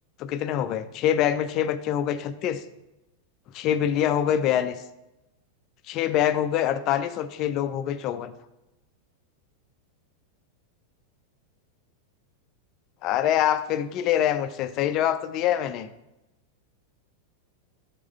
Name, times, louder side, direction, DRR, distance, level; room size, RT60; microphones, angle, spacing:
voice 1, 0.2-2.6 3.5-4.8 5.9-8.3 13.0-15.9, left 10 dB, 40° left, 13 dB, 0.5 m, -25 dB
6.9 x 4.8 x 5.6 m, 0.95 s
figure-of-eight pair, 90°, 0 cm